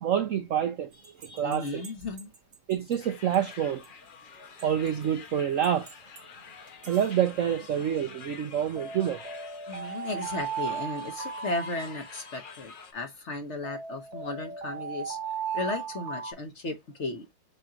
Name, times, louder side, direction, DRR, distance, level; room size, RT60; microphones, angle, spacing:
voice 1, 0.0-1.9 2.7-3.8 4.6-6.0 6.9-9.2, right 9 dB, 70° right, 0.7 m, -27 dB
sound 1, 1.0-2.9 3.3-3.4 3.8-3.9 4.6-5.0 5.6-6.2 6.7-7.0 8.8-12.5 13.6-16.3, right 6 dB, 90° right, 2.6 m, -37 dB
voice 2, 1.4-2.3 9.7-15.2 15.5-17.3, left 2 dB, 45° left, 1.1 m, -35 dB
sound 2, 3.0-12.9, left 6 dB, 85° left, 0.4 m, -48 dB
7.7 x 2.9 x 2.4 m
omnidirectional pair, 2.0 m